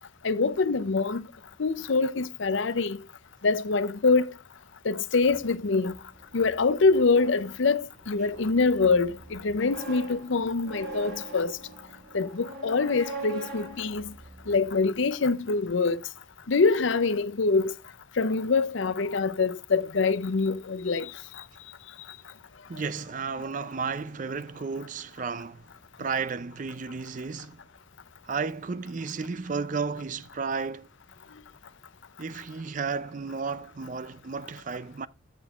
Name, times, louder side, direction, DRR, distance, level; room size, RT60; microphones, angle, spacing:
voice 1, 0.2-1.2 1.6-3.0 3.4-4.3 4.8-5.9 6.3-11.6 12.1-14.1 14.5-16.0 16.5-17.7 18.2-21.1 23.5-23.6, left 4 dB, 70° left, 0.6 m, -25 dB
sound 1, 5.2-15.1, right 2 dB, 55° right, 3.9 m, -43 dB
voice 2, 22.7-25.7 26.0-27.6 28.2-30.9 32.2-35.1, right 5 dB, 40° right, 0.4 m, -33 dB
15.0 x 6.0 x 2.4 m
head